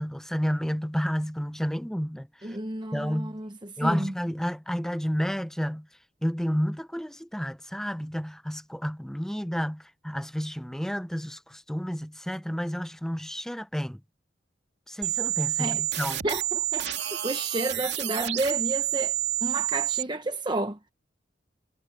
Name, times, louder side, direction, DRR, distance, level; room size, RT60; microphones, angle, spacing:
voice 1, 0.0-2.6 2.9-3.4 3.8-5.9 6.2-14.0 14.9-16.2, equal, 5° left, 0.7 m, -31 dB
voice 2, 2.4-4.1 15.6-15.8 16.2-16.9 17.2-19.1 19.4-20.9, right 2 dB, 25° right, 0.9 m, -31 dB
sound 1, 15.0-20.0, right 14 dB, 70° right, 2.7 m, -29 dB
head